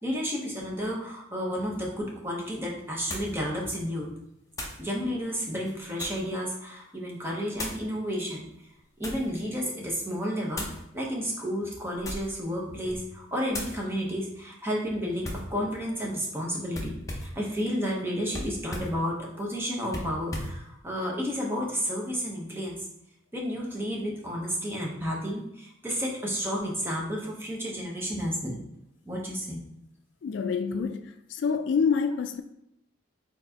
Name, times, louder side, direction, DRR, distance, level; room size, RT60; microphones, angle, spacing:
voice 1, 0.0-4.1 4.8-8.4 9.0-10.7 10.9-22.8 23.3-28.6 29.1-29.6, equal, 10° right, 0.9 m, -31 dB
sound 1, 2.0-2.1 3.1-3.4 4.5-4.8 5.6-6.3 7.5-7.9 8.6-9.3 10.5-10.8 11.9-12.4 12.8-13.1 13.5-13.8 15.2-15.5 16.7-17.4 18.3-19.0 19.9-20.6, left 1 dB, 15° left, 0.7 m, -37 dB
voice 2, 30.2-32.4, left 6 dB, 65° left, 0.3 m, -27 dB
4.2 x 4.0 x 2.8 m
head